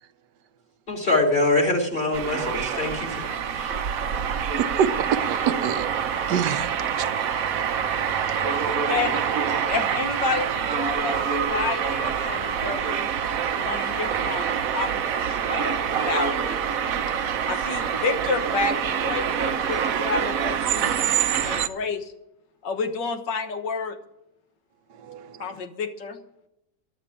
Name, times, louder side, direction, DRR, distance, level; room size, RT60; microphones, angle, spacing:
voice 1, 0.9-3.8, left 2 dB, 30° left, 2 dB, 2.9 m, -24 dB
sound 1, 2.1-21.7, right 7 dB, 60° right, 1.0 m, -26 dB
voice 2, 4.6-5.9 6.3-6.8 7.2-7.3 25.1-25.2, right 8 dB, 80° right, 11 dB, 1.4 m, -25 dB
voice 3, 8.5-9.2 9.7-11.2 11.5-13.1 13.6-16.6 17.5-20.9 21.4-22.1 22.6-24.0 25.4-26.2, left 4 dB, 90° left, 7 dB, 1.9 m, -30 dB
11.5 x 8.9 x 9.9 m, 0.84 s
omnidirectional pair, 1.9 m